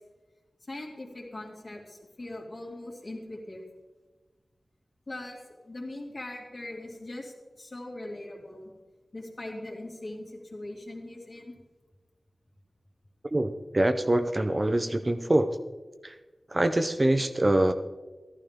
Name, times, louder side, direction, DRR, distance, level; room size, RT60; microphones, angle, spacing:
voice 1, 0.7-3.6 5.1-5.4 5.6-8.7 9.1-11.6, left 1 dB, 45° left, 0 dB, 2.5 m, -40 dB
voice 2, 13.3-15.5 16.0-16.1 16.5-17.7, right 1 dB, 30° right, 9 dB, 0.6 m, -24 dB
14.0 x 12.0 x 3.6 m, 1.3 s
wide cardioid pair, 75°, 0 cm